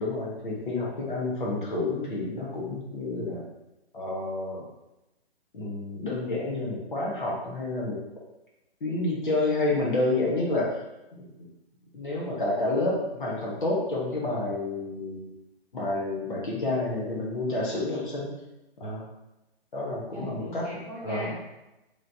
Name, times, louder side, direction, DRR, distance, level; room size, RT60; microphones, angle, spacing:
voice 1, 0.0-3.4 3.9-4.6 5.5-8.0 8.8-10.7 11.1-11.5 11.9-15.4 15.7-18.3 18.8-19.0 19.7-20.6 21.0-21.3, left 2 dB, 50° left, -3 dB, 1.1 m, -29 dB
voice 2, 20.1-21.3, equal, 15° right, -9 dB, 1.2 m, -39 dB
3.8 x 3.2 x 2.7 m, 0.97 s
hypercardioid pair, 165°, 31 cm